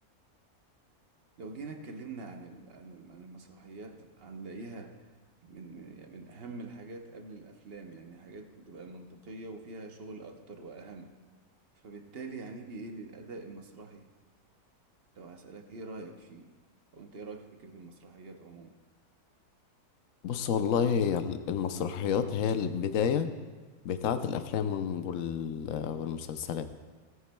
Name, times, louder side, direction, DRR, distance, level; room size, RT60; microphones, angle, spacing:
voice 1, 1.4-5.0 5.4-11.2 11.8-14.1 15.2-16.5 16.9-18.8, right 3 dB, 45° right, 5 dB, 0.9 m, -45 dB
voice 2, 20.2-23.3 23.8-26.7, left 7 dB, 65° left, 9 dB, 1.0 m, -30 dB
17.0 x 9.4 x 2.3 m, 1.4 s
omnidirectional pair, 1.7 m